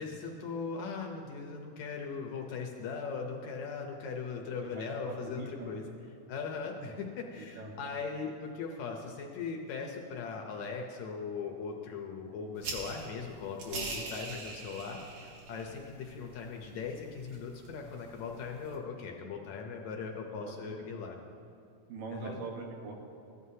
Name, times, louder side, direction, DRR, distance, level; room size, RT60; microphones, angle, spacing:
voice 1, 0.0-5.8 6.3-21.2 22.1-22.4, left 5 dB, 75° left, 1 dB, 1.8 m, -39 dB
voice 2, 4.6-5.8 7.4-7.7 13.7-14.1 20.3-20.9 21.9-22.9, right 3 dB, 85° right, 0 dB, 3.0 m, -43 dB
sound 1, 12.6-18.7, right 3 dB, 60° right, 2.5 m, -44 dB
15.0 x 11.0 x 2.8 m, 2.6 s
omnidirectional pair, 3.8 m